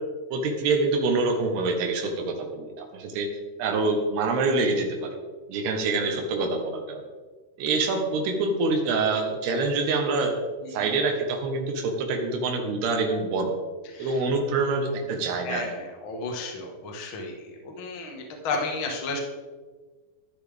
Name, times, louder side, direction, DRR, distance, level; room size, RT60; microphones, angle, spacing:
voice 1, 0.3-3.3 3.6-5.1 5.5-7.0 7.6-10.4 10.7-13.5 14.0-15.7, right 3 dB, 80° right, 3 dB, 3.4 m, -26 dB
voice 2, 15.4-19.2, left 3 dB, 55° left, 0 dB, 1.4 m, -33 dB
12.0 x 11.0 x 3.5 m, 1.4 s
omnidirectional pair, 4.6 m